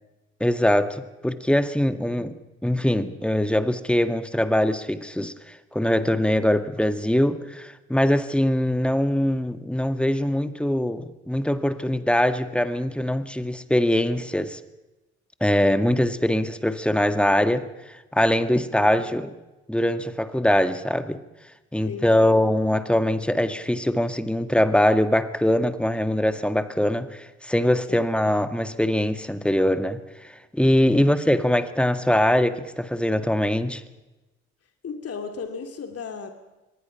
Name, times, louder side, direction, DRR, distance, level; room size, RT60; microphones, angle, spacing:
voice 1, 0.4-2.3 2.6-14.6 15.4-17.7 18.1-19.3 19.7-21.2 21.7-33.8, left 1 dB, 5° left, 11 dB, 2.0 m, -22 dB
voice 2, 21.8-22.5 27.9-28.4 30.8-31.1 34.8-36.3, left 5 dB, 45° left, 6 dB, 2.8 m, -36 dB
25.5 x 22.0 x 5.9 m, 1.1 s
figure-of-eight pair, 45°, 34 cm